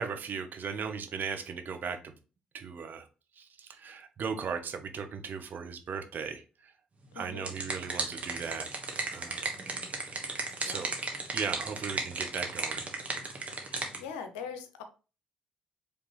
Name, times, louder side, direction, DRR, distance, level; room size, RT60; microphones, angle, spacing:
voice 1, 0.0-2.1 2.5-3.0 3.4-6.4 7.1-8.7 9.1-9.5 10.6-11.0 11.3-12.9, right 6 dB, 50° right, 7 dB, 0.8 m, -37 dB
voice 2, 7.1-7.5 10.6-10.9 13.6-14.8, left 6 dB, 75° left, 7 dB, 0.7 m, -42 dB
sound 1, 7.1-14.0, right 3 dB, 30° right, 1.4 m, -35 dB
5.1 x 3.3 x 3.0 m, 0.33 s
figure-of-eight pair, 45°, 4 cm